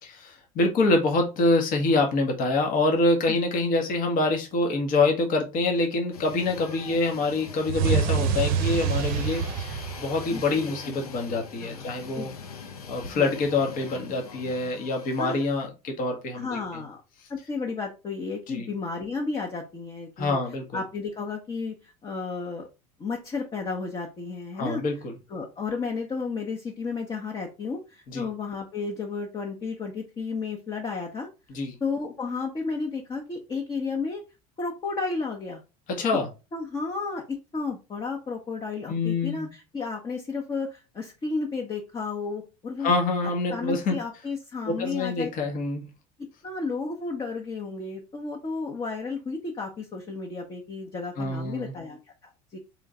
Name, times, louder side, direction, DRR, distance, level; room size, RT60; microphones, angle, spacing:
voice 1, 0.0-12.3 12.9-16.6 18.5-18.7 20.2-20.8 24.6-25.1 28.1-28.3 31.5-31.8 35.9-36.3 38.9-39.5 42.8-44.0 44.7-45.8 51.2-51.7, left 3 dB, 50° left, 3 dB, 1.3 m, -26 dB
sound 1, 6.1-15.7, left 5 dB, 85° left, 0.6 m, -43 dB
sound 2, 7.7-10.8, right 6 dB, 55° right, 0.6 m, -26 dB
voice 2, 10.3-11.1 11.6-12.3 13.1-13.3 15.2-15.5 16.4-17.0 17.3-20.4 20.7-22.7 23.0-24.8 25.3-31.3 31.8-34.2 34.6-35.6 36.5-42.9 43.5-45.3 46.4-52.6, left 4 dB, 25° left, 0 dB, 1.0 m, -33 dB
3.7 x 3.4 x 3.7 m, 0.28 s
hypercardioid pair, 70°, 19 cm